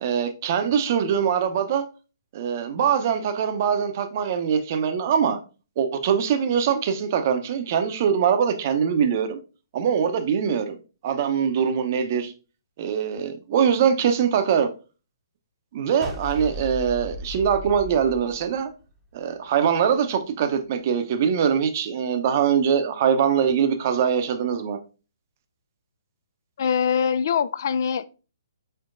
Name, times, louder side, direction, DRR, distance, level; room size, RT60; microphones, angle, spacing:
voice 1, 0.0-1.9 2.3-5.4 5.8-9.4 9.7-10.8 11.0-12.3 12.8-14.7 15.7-18.7 19.1-24.8, right 7 dB, 45° right, 0.6 m, -23 dB
sound 1, 16.0-19.2, equal, ahead, 0.8 m, -37 dB
voice 2, 26.6-28.1, left 7 dB, 60° left, 0.3 m, -23 dB
4.5 x 4.3 x 2.5 m
figure-of-eight pair, 130°, 2 cm